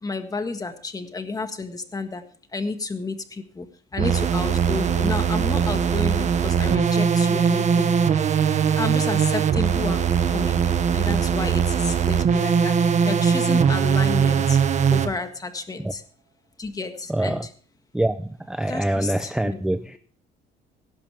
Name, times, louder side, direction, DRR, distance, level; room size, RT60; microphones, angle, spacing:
voice 1, 0.0-2.2 2.5-7.9 8.8-10.6 10.9-14.6 14.9-16.0 16.6-17.5 18.7-19.6, left 3 dB, 20° left, 8 dB, 1.7 m, -31 dB
sound 1, 4.0-15.1, right 7 dB, 45° right, 1.2 m, -21 dB
voice 2, 17.1-17.5 17.9-20.0, right 1 dB, 5° right, 10 dB, 0.6 m, -25 dB
17.0 x 11.5 x 3.4 m, 0.42 s
cardioid pair, 110°, 17 cm